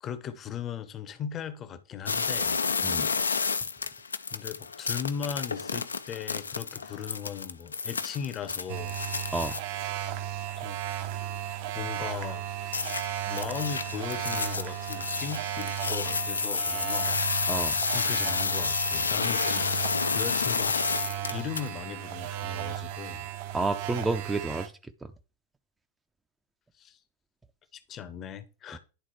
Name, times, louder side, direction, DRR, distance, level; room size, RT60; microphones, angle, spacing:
voice 1, 0.0-2.6 4.3-8.9 10.6-10.8 11.7-12.5 13.3-17.2 17.6-20.8 21.3-23.3 26.8-27.0 27.7-28.8, left 8 dB, 30° left, 0.7 m, -38 dB
sound 1, 2.1-9.6 12.7-21.7, left 5 dB, 75° left, 0.4 m, -30 dB
voice 2, 2.8-3.1 9.3-9.6 17.5-17.8 23.5-24.7 28.7-28.8, right 3 dB, 10° right, 0.5 m, -30 dB
sound 2, 8.7-24.7, right 11 dB, 50° right, 0.6 m, -35 dB
10.5 x 3.9 x 3.0 m
figure-of-eight pair, 90°, 0 cm